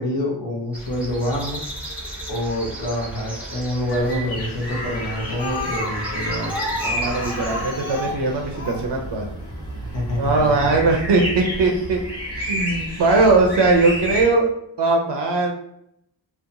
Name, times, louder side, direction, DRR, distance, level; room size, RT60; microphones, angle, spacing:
voice 1, 0.0-1.6 2.3-6.5 9.9-10.8, left 1 dB, 80° left, -3 dB, 0.8 m, -26 dB
sound 1, 0.7-7.7, right 1 dB, 5° right, 0.7 m, -35 dB
sound 2, 3.9-14.2, equal, 60° left, 1.2 m, -31 dB
Speech, 5.4-8.9 9.9-10.0 10.4-10.5 10.7-10.8, left 2 dB, 35° left, 1.0 m, -31 dB
voice 2, 6.8-9.3 10.2-12.0 12.4-14.5 14.8-15.5, right 3 dB, 70° right, 1 dB, 0.5 m, -20 dB
2.8 x 2.0 x 2.5 m, 0.76 s
wide cardioid pair, 70°, 45 cm